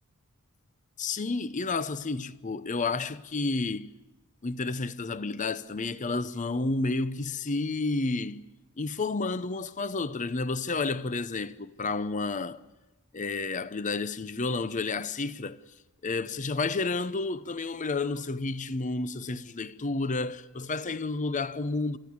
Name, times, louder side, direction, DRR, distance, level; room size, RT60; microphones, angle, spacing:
voice 1, 1.0-3.9 4.4-8.4 8.8-12.6 13.1-15.6 16.0-22.0, left 3 dB, 35° left, 0.7 m, -31 dB
29.5 x 14.0 x 9.5 m
head